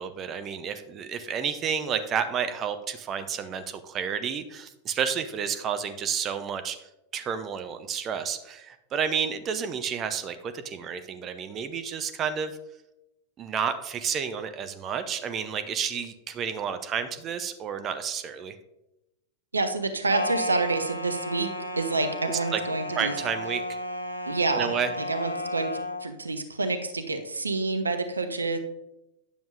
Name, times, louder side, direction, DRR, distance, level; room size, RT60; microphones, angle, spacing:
voice 1, 0.0-6.8 7.1-12.5 13.4-18.6 22.5-22.6 23.0-23.8 24.5-24.9, right 7 dB, 30° right, 9 dB, 0.6 m, -30 dB
voice 2, 19.5-21.5 21.8-23.2 24.3-28.6, right 3 dB, 80° right, 8 dB, 0.6 m, -28 dB
sound 1, 20.1-26.1, left 1 dB, 90° left, 0.7 m, -33 dB
9.7 x 6.9 x 2.5 m, 0.90 s
figure-of-eight pair, 90°, 0 cm